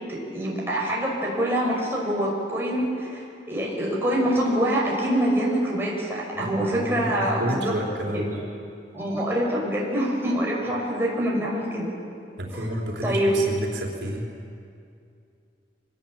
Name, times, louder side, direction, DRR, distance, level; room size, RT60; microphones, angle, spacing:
voice 1, 0.1-7.7 8.1-8.2 8.9-11.9 12.5-12.7 13.0-13.4, equal, 15° right, -4 dB, 6.0 m, -25 dB
voice 2, 6.4-8.4 12.4-14.2, equal, 80° right, -1 dB, 4.0 m, -30 dB
25.0 x 20.0 x 9.0 m, 2.5 s
head